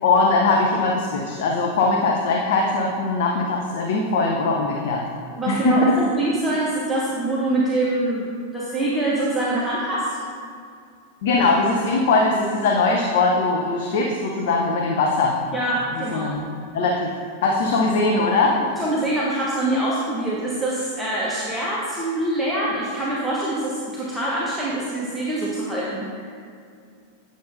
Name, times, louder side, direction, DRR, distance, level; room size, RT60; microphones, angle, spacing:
voice 1, 0.0-5.0 5.5-6.0 11.2-15.4 16.0-16.5 16.7-17.1 17.4-18.6, left 3 dB, 55° left, 0 dB, 0.6 m, -21 dB
voice 2, 5.3-10.2 15.5-16.4 18.8-26.4, right 1 dB, 5° right, -7 dB, 0.9 m, -24 dB
8.6 x 6.3 x 2.6 m, 2.4 s
figure-of-eight pair, 90°, 0 cm